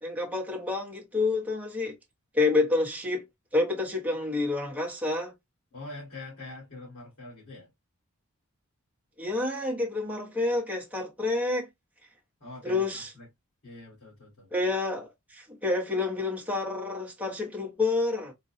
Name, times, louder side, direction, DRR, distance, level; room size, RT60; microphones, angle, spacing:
voice 1, 0.0-1.9 2.3-3.3 3.5-5.3 9.2-11.7 12.6-13.1 14.5-18.3, left 3 dB, 5° right, 0.8 m, -28 dB
voice 2, 5.7-7.7 12.4-13.3 13.6-14.5, left 2 dB, 65° left, 1.9 m, -44 dB
3.9 x 2.2 x 2.6 m
head